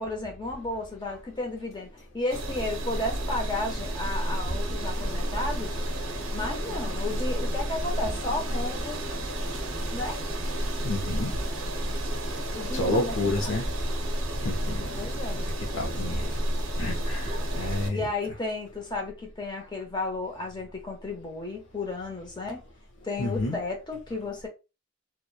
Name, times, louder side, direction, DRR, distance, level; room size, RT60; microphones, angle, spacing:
voice 1, 0.0-5.8 6.3-9.0 9.9-10.2 12.5-13.2 13.4-13.5 15.0-15.4 17.9-22.6 23.0-24.5, left 2 dB, 20° left, 0.6 m, -33 dB
sound 1, 2.3-17.9, right 1 dB, 80° right, 0.5 m, -31 dB
voice 2, 10.8-11.3 12.7-13.7 14.4-16.3 16.8-18.0 23.2-23.6, left 2 dB, 75° left, 0.5 m, -30 dB
2.8 x 2.1 x 2.2 m
head